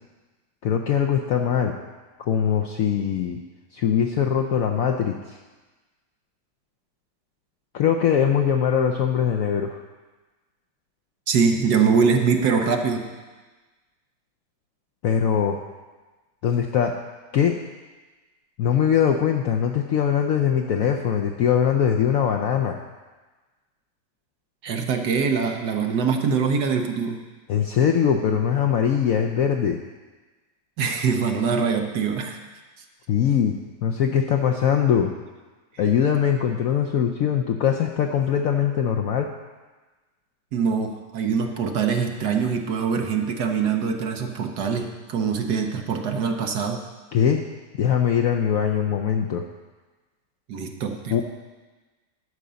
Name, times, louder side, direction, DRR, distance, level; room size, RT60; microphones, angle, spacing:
voice 1, 0.6-1.7 2.2-3.4 3.7-5.4 7.7-9.8 15.0-15.6 16.4-17.0 17.3-17.6 18.6-22.8 27.5-29.8 33.1-33.5 33.8-35.1 35.8-39.3 47.1-47.4 47.8-49.4 51.1-51.2, left 8 dB, 75° left, 3 dB, 0.8 m, -21 dB
voice 2, 11.3-13.1 24.6-27.2 30.8-32.4 40.5-46.8 50.5-51.2, right 6 dB, 65° right, 4 dB, 1.4 m, -23 dB
11.5 x 5.2 x 6.9 m, 1.3 s
omnidirectional pair, 2.0 m